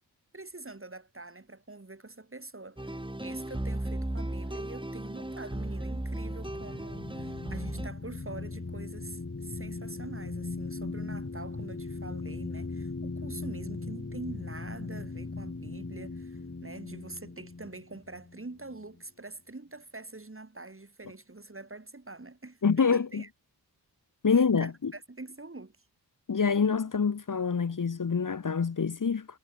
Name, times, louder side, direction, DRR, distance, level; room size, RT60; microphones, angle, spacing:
voice 1, 0.3-23.3 24.3-25.8, right 2 dB, 35° right, 4.7 m, -45 dB
sound 1, 2.8-7.9, right 1 dB, 10° right, 3.2 m, -35 dB
sound 2, 5.4-19.0, left 3 dB, 35° left, 3.0 m, -39 dB
voice 2, 22.6-23.2 24.2-24.9 26.3-29.3, left 5 dB, 50° left, 1.3 m, -26 dB
wide cardioid pair, 60°, 39 cm